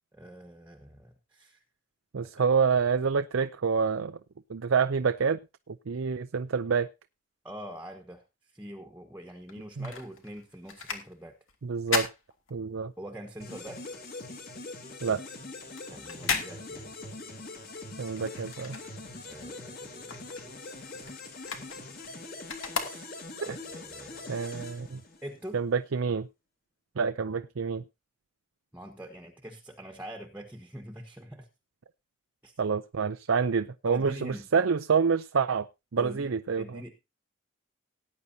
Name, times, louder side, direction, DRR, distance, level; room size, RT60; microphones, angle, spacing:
voice 1, 0.1-1.6 2.4-2.5 7.4-11.4 13.0-13.8 15.9-16.9 19.3-20.5 20.9-21.2 22.1-22.4 22.8-23.2 23.4-24.3 25.2-25.6 28.7-31.5 32.4-32.5 33.9-34.5 36.0-36.3 36.6-37.0, equal, 10° right, 1.3 m, -44 dB
voice 2, 2.1-4.2 4.5-5.4 5.7-6.9 9.8-9.9 11.6-12.1 12.5-12.9 15.0-15.2 18.0-18.8 23.4-23.6 24.3-25.0 25.5-26.3 27.0-27.8 32.6-35.7 35.9-36.8, right 5 dB, 80° right, 0.5 m, -27 dB
sound 1, 9.4-13.1 13.4-19.4 19.7-23.5 24.0-24.1, left 5 dB, 75° left, 2.5 m, -37 dB
sound 2, 13.4-25.5, left 2 dB, 45° left, 3.3 m, -43 dB
18.5 x 9.6 x 2.8 m
head